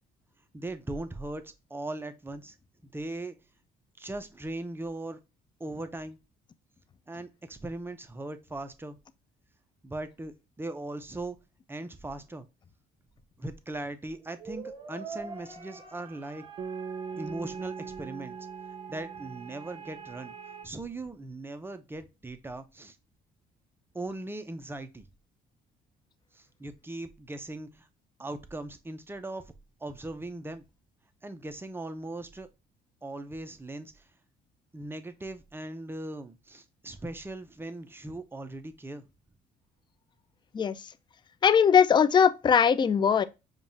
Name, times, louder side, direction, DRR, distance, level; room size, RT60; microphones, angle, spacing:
voice 1, 0.5-2.6 2.8-3.4 4.0-5.2 5.6-6.2 7.1-9.0 9.8-11.4 11.7-12.5 13.4-16.5 17.1-18.4 18.9-20.3 20.6-23.0 23.9-25.1 26.3-27.9 28.2-29.5 29.8-30.6 31.2-32.5 33.0-34.0 34.7-39.0, right 2 dB, 10° right, 0.6 m, -39 dB
sound 1, 14.2-20.7, right 6 dB, 30° right, 1.2 m, -44 dB
sound 2, 16.6-20.8, right 5 dB, 45° right, 0.6 m, -42 dB
voice 2, 41.4-43.2, left 7 dB, 25° left, 0.4 m, -20 dB
5.2 x 2.4 x 2.6 m
supercardioid pair, 80°, 18 cm